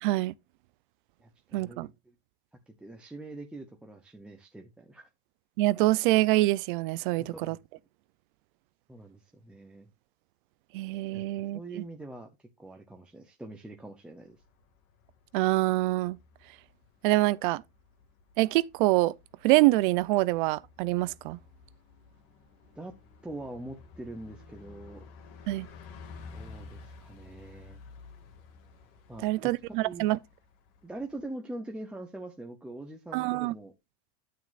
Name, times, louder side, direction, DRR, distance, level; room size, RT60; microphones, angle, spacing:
voice 1, 0.0-0.3 1.5-1.9 5.6-7.6 10.7-11.6 15.3-16.2 17.0-17.6 18.4-19.1 19.4-21.4 25.5-25.7 29.2-30.2 33.1-33.5, right 18 dB, 50° right, 0.5 m, -25 dB
voice 2, 1.2-2.1 2.8-5.1 7.2-7.6 8.9-9.9 11.1-11.3 11.5-14.4 22.8-22.9 23.2-25.1 26.3-27.8 29.1-30.2 30.8-33.7, right 2 dB, 5° right, 0.6 m, -43 dB
Bus, 14.2-31.3, left 4 dB, 50° left, 2.1 m, -52 dB
9.5 x 9.2 x 2.4 m
supercardioid pair, 170°, 33 cm